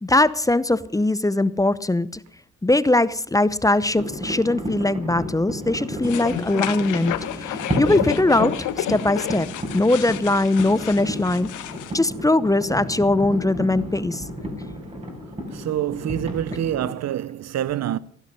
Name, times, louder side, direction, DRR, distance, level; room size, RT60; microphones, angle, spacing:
voice 1, 0.0-2.2 2.6-9.5 9.7-11.5 11.9-14.2, left 2 dB, 10° left, 0.7 m, -21 dB
sound 1, 4.0-16.9, equal, 20° right, 5.4 m, -32 dB
sound 2, 6.0-11.9, left 12 dB, 85° left, 1.1 m, -30 dB
voice 2, 15.5-18.0, right 11 dB, 60° right, 0.7 m, -26 dB
16.0 x 11.5 x 6.6 m
cardioid pair, 90°, 30 cm